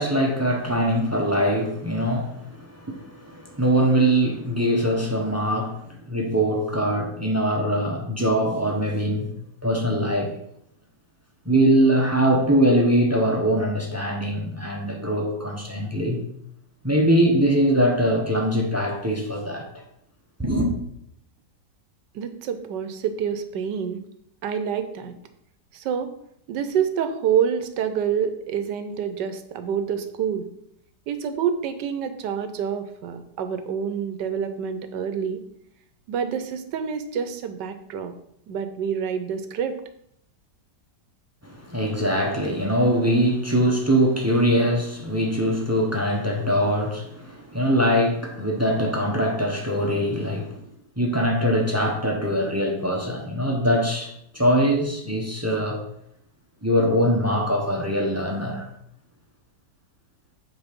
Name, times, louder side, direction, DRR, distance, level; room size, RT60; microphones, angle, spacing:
voice 1, 0.0-9.3 9.6-10.3 11.4-16.2 16.8-19.7 20.4-20.7 41.4-50.6 51.0-55.8 56.6-58.7, equal, 15° right, 0.7 m, -22 dB
voice 2, 22.1-24.0 24.4-25.1 25.7-26.1 26.5-30.5 31.1-35.4 36.1-38.1 38.5-39.8, right 7 dB, 80° right, 1.3 m, -27 dB
8.1 x 3.9 x 5.2 m
omnidirectional pair, 1.9 m